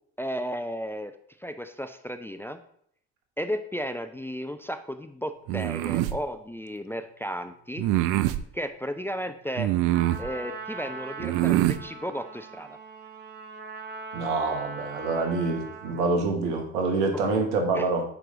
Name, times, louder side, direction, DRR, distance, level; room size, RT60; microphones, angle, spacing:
voice 1, 0.2-2.6 3.4-7.9 8.5-9.7 10.2-12.8 17.7-17.9, equal, 5° left, 9 dB, 0.4 m, -34 dB
sound 1, 5.5-6.2 7.8-8.4 9.6-10.3 11.2-11.8, right 15 dB, 60° right, 0.5 m, -24 dB
Trumpet, 9.9-16.1, right 3 dB, 30° right, 1.0 m, -40 dB
voice 2, 14.1-18.0, right 3 dB, 80° right, 4 dB, 1.1 m, -26 dB
6.2 x 4.6 x 3.8 m, 0.66 s
hypercardioid pair, 50°, 35 cm